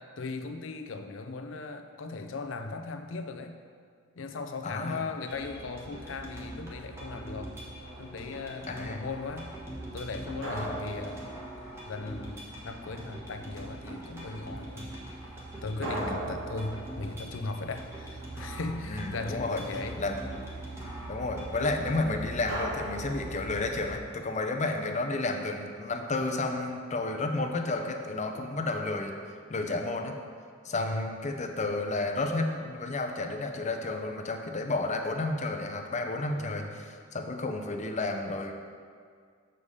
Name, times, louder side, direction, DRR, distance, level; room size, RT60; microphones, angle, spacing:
voice 1, 0.2-3.6 4.2-7.6 8.0-9.5 9.9-11.2 11.8-14.9 15.6-20.0 30.7-31.1 36.3-36.7, left 3 dB, 80° left, 7 dB, 0.6 m, -38 dB
voice 2, 4.6-5.0 8.7-9.1 10.5-10.8 15.9-16.3 18.9-19.6 20.0-20.2 21.1-29.1 29.5-30.2 30.6-38.5, left 2 dB, 35° left, 4 dB, 0.6 m, -31 dB
sound 1, 5.3-21.8, right 1 dB, 15° right, 1.4 m, -44 dB
Truck, 5.3-24.0, right 2 dB, 35° right, 1.0 m, -45 dB
sound 2, 7.8-8.4 10.4-12.2 15.8-18.4 22.5-24.1, right 1 dB, 85° right, 1.7 m, -39 dB
6.8 x 5.0 x 5.4 m, 2.1 s
head